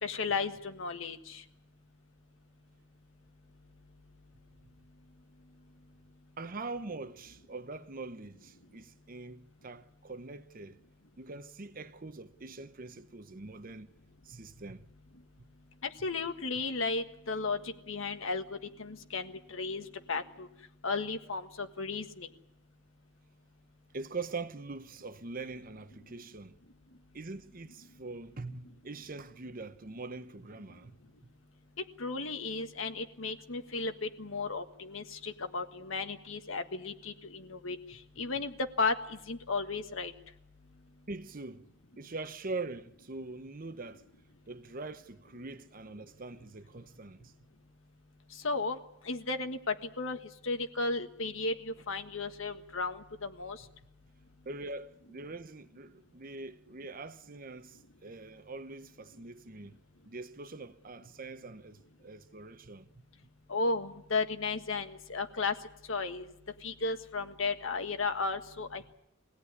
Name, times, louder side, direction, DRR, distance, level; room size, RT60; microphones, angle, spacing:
voice 1, 0.0-1.4 15.8-18.4 18.8-20.5 20.8-22.3 32.0-40.1 48.4-48.8 49.0-50.2 50.4-53.6 63.5-65.5 65.9-66.3 66.6-68.9, left 3 dB, 70° left, 1.6 m, -34 dB
voice 2, 6.4-10.8 11.2-13.9 14.2-14.9 23.9-26.6 27.1-30.9 41.1-41.7 42.0-44.1 44.5-47.3 54.4-59.8 60.0-62.9, right 3 dB, 45° right, 0.9 m, -43 dB
23.5 x 17.0 x 9.7 m
head